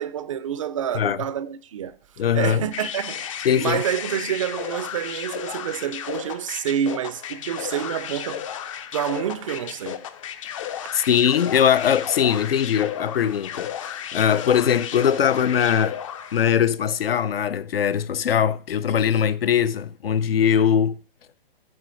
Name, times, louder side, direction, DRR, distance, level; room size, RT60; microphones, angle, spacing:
voice 1, 0.0-2.0 2.3-8.5 8.9-10.1, right 9 dB, 35° right, 0.4 m, -28 dB
voice 2, 2.2-2.6 3.4-3.8 10.7-16.0 16.3-21.0, left 8 dB, 80° left, 0.6 m, -21 dB
sound 1, 2.7-16.5, left 9 dB, 35° left, 0.5 m, -34 dB
8.8 x 3.3 x 6.2 m
hypercardioid pair, 145°, 29 cm